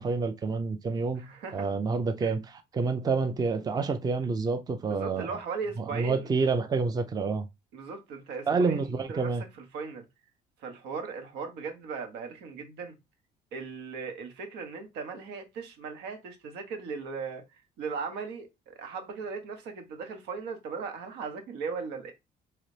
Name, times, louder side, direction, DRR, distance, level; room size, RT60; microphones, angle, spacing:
voice 1, 0.0-1.2 1.5-5.3 5.8-7.5 8.5-9.4, right 4 dB, 25° right, 0.5 m, -28 dB
voice 2, 1.2-1.7 2.2-2.3 4.9-6.3 7.7-8.8 9.1-9.3 9.7-10.1 10.6-13.0 13.5-17.4 17.8-22.1, right 5 dB, 85° right, 1.1 m, -37 dB
4.0 x 3.2 x 3.2 m
cardioid pair, 110°, 17 cm